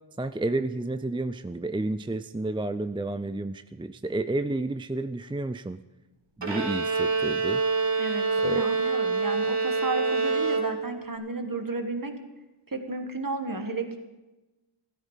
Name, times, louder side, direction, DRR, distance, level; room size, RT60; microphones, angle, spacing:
voice 1, 0.2-5.8 6.4-7.6 8.4-8.7, right 2 dB, 10° right, 11 dB, 0.4 m, -31 dB
Bowed string instrument, 6.4-11.1, right 4 dB, 60° right, 2.0 m, -26 dB
voice 2, 8.0-12.1 12.7-14.0, right 3 dB, 40° right, 6 dB, 1.8 m, -33 dB
15.5 x 13.0 x 5.7 m, 1.1 s
wide cardioid pair, 55°, 49 cm